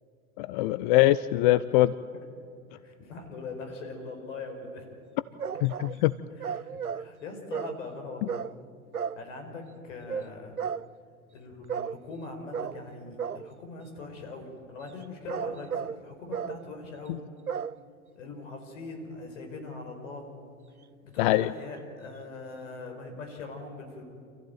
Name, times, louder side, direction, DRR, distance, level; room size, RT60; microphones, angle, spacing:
voice 1, 0.4-1.9 5.6-6.1 21.2-21.5, left 16 dB, 35° left, 16 dB, 0.5 m, -22 dB
voice 2, 2.8-4.9 6.3-8.4 9.2-10.6 11.3-17.2 18.2-20.3 21.0-24.0, left 3 dB, 60° left, 4 dB, 5.3 m, -41 dB
sound 1, 5.4-6.0 6.4-7.1 7.5-7.8 8.3-8.5 8.9-9.2 10.1-10.3 10.6-10.9 11.7-12.0 12.5-12.8 13.2-13.5 15.0-16.0 16.3-16.6 17.5-17.8, right 7 dB, 90° right, 0.6 m, -33 dB
28.0 x 15.0 x 9.2 m, 2.3 s
figure-of-eight pair, 90°, 42 cm